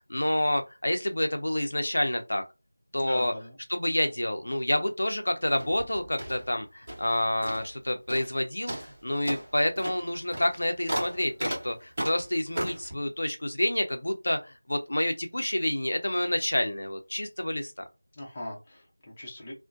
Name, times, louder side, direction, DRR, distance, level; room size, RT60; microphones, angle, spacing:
voice 1, 0.1-2.4 2.9-3.3 3.7-17.7, left 1 dB, 65° left, 0.5 m, -28 dB
voice 2, 3.0-3.6 18.1-19.5, left 1 dB, 15° left, 0.7 m, -40 dB
sound 1, 5.5-7.1 7.4-7.8 8.1-8.4 8.7-12.9, right 1 dB, 25° right, 1.2 m, -35 dB
2.6 x 2.1 x 2.4 m
figure-of-eight pair, 175°, 0 cm